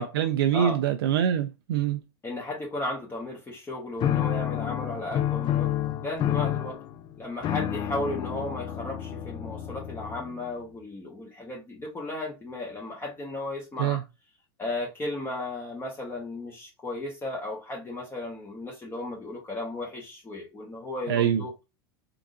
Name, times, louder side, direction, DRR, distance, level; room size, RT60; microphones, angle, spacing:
voice 1, 0.0-2.0 13.8-14.0 21.1-21.4, right 9 dB, 80° right, 0.4 m, -24 dB
voice 2, 2.2-5.7 6.0-6.8 7.2-14.0 14.6-21.5, left 2 dB, 20° left, 1.2 m, -35 dB
sound 1, 4.0-10.5, left 11 dB, 40° left, 0.5 m, -29 dB
3.8 x 3.6 x 2.5 m
hypercardioid pair, 100°, 12 cm